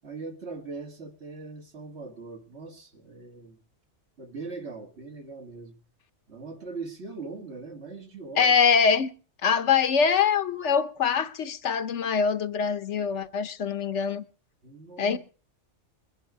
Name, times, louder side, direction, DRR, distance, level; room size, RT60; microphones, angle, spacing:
voice 1, 0.0-3.6 4.2-5.8 6.3-8.6 14.6-15.2, right 4 dB, 65° right, 2.2 m, -40 dB
voice 2, 8.4-9.1 9.4-14.2 15.0-15.2, left 6 dB, 70° left, 1.2 m, -23 dB
22.0 x 10.5 x 4.9 m
omnidirectional pair, 1.2 m